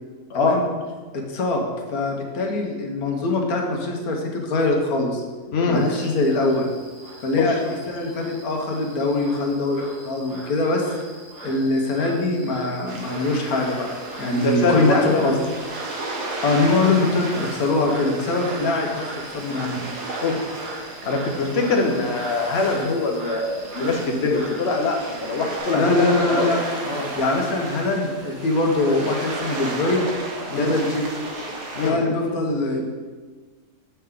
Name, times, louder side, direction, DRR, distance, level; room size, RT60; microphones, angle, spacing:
voice 1, 0.3-0.6 5.5-5.9 7.3-7.6 14.4-15.3 20.2-20.5 21.0-26.5 26.8-27.1 30.5-30.7 31.7-32.0, left 3 dB, 45° left, 1 dB, 1.0 m, -23 dB
voice 2, 1.1-5.2 5.7-6.7 7.2-10.8 11.4-15.4 16.4-19.0 19.3-19.9 25.7-26.6 27.2-30.1 30.5-31.1 31.8-32.9, left 2 dB, 70° left, 1 dB, 1.4 m, -23 dB
Frog, 5.7-25.6, right 2 dB, 30° right, 1.0 m, -40 dB
sound 1, 12.9-31.9, right 2 dB, 80° right, 1.4 m, -34 dB
7.2 x 5.6 x 3.6 m, 1.4 s
omnidirectional pair, 1.7 m